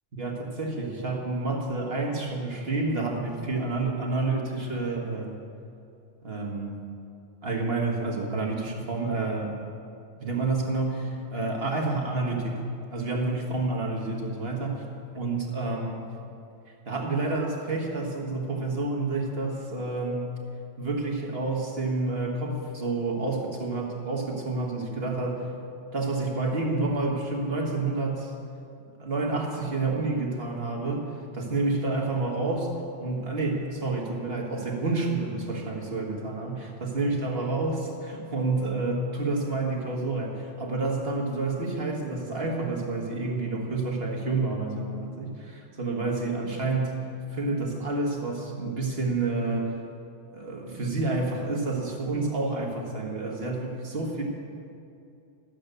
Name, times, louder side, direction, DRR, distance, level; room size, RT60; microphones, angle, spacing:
voice 1, 0.2-5.4 6.2-6.8 7.4-9.6 10.2-12.6 12.9-14.8 15.1-16.1 16.9-20.3 20.8-25.5 25.9-28.3 29.0-31.1 31.3-32.7 33.0-47.0 47.3-49.7 50.3-54.2, right 3 dB, 50° right, 0 dB, 1.9 m, -29 dB
13.0 x 8.8 x 6.7 m, 2.6 s
omnidirectional pair, 1.3 m